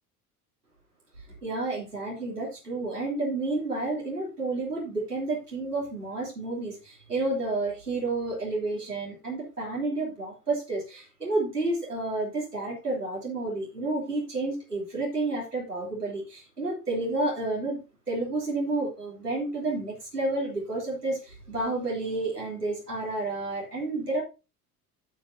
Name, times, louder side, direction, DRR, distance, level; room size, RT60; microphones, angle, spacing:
voice 1, 1.4-17.8 18.1-24.2, right 2 dB, 85° right, -5 dB, 3.7 m, -30 dB
15.5 x 5.3 x 2.8 m, 0.28 s
figure-of-eight pair, 60°, 45 cm